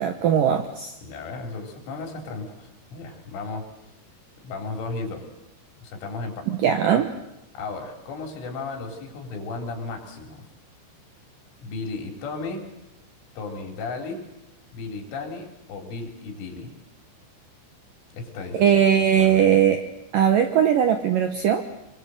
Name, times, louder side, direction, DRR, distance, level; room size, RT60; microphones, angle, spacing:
voice 1, 0.0-0.9 6.5-7.1 18.6-19.8 20.1-21.6, right 9 dB, 75° right, 7 dB, 2.0 m, -19 dB
voice 2, 1.0-3.7 4.4-5.3 5.8-6.5 7.5-10.5 11.6-12.7 13.4-14.2 14.7-16.7 18.1-19.5, left 3 dB, 90° left, 3 dB, 6.3 m, -35 dB
26.5 x 23.5 x 7.9 m, 0.87 s
omnidirectional pair, 5.5 m